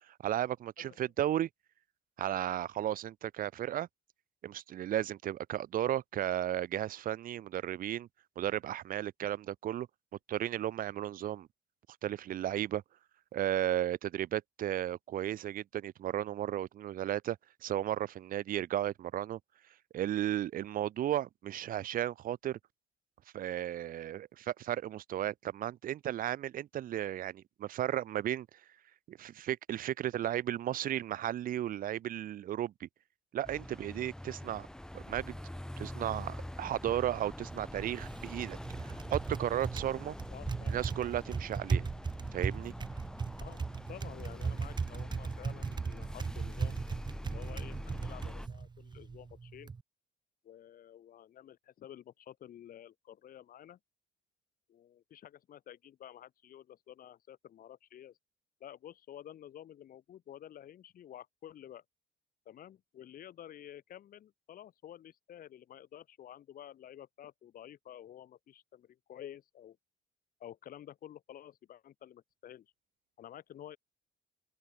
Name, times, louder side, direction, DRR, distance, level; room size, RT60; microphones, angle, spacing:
voice 1, 0.1-1.5 2.2-3.9 4.4-8.1 8.4-9.9 10.3-11.5 12.0-12.8 13.3-17.4 17.6-19.4 19.9-22.6 23.3-28.5 29.1-32.9 33.3-34.7 34.9-35.4 35.8-40.2 40.7-41.8 42.3-42.7, right 12 dB, 55° right, 1.0 m, -34 dB
sound 1, 33.4-48.5, left 1 dB, 5° left, 1.7 m, -45 dB
Typing, 37.4-49.8, right 5 dB, 25° right, 2.1 m, -38 dB
voice 2, 40.3-40.8 41.7-41.9 43.4-43.6 43.9-46.8 47.2-49.7 50.4-53.8 54.7-58.2 58.6-61.8 62.4-69.8 70.4-72.7 73.2-73.8, left 11 dB, 60° left, 4.5 m, -51 dB
open air
cardioid pair, 110°, 17 cm